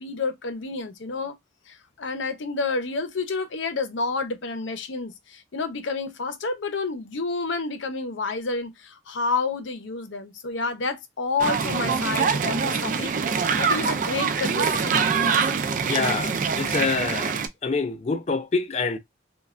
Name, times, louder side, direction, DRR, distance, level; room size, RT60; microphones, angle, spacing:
voice 1, 0.0-1.4 1.7-15.4, left 4 dB, 75° left, 0.6 m, -30 dB
sound 1, 11.4-17.5, right 5 dB, 45° right, 0.3 m, -24 dB
voice 2, 15.8-19.0, left 4 dB, 35° left, 0.3 m, -26 dB
3.1 x 2.2 x 2.4 m
head